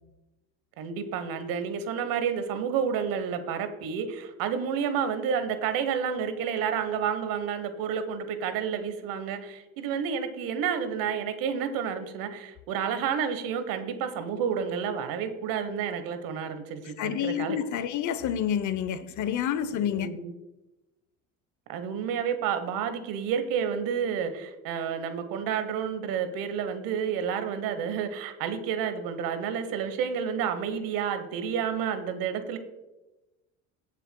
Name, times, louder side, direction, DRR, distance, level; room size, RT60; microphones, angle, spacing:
voice 1, 0.8-17.6 19.8-20.3 21.7-32.6, right 7 dB, 70° right, 1.2 m, -30 dB
voice 2, 17.0-20.1, left 9 dB, 55° left, 0.8 m, -28 dB
18.0 x 6.6 x 2.3 m
supercardioid pair, 75°, 36 cm